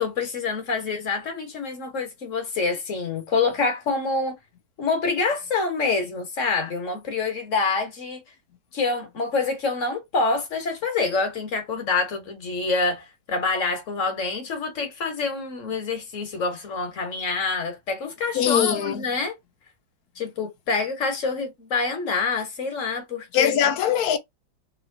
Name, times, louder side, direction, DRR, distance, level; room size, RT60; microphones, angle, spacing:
voice 1, 0.0-4.4 4.8-8.2 8.7-19.3 20.1-23.6, left 4 dB, 45° left, 1.3 m, -26 dB
voice 2, 18.3-19.0 23.3-24.2, left 9 dB, 65° left, 0.9 m, -21 dB
3.7 x 3.0 x 2.6 m
omnidirectional pair, 2.2 m